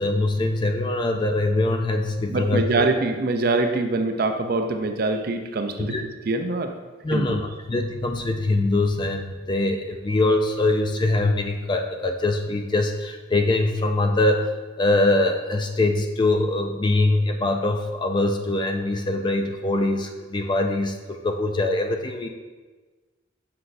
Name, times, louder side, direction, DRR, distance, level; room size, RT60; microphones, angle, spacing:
voice 1, 0.0-2.9 5.8-6.0 7.0-22.3, left 2 dB, 20° left, 5 dB, 0.3 m, -23 dB
voice 2, 2.3-6.0 6.2-6.7 7.1-7.4, right 3 dB, 45° right, 7 dB, 0.4 m, -24 dB
6.5 x 5.8 x 2.6 m, 1.3 s
head